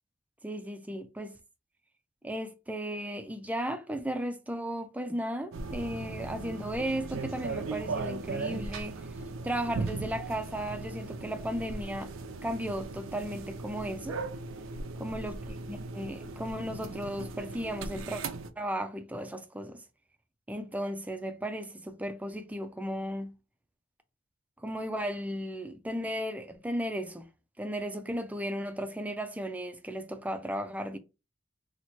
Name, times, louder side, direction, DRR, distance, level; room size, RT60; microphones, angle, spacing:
voice 1, 0.4-1.4 2.2-9.1 9.4-12.1 12.4-14.2 15.0-18.2 18.6-19.8 20.5-23.3 24.6-27.3 27.6-31.0, equal, 10° right, 0.4 m, -35 dB
sound 1, 5.5-18.5, right 3 dB, 90° right, 0.5 m, -38 dB
2.9 x 2.1 x 4.1 m
head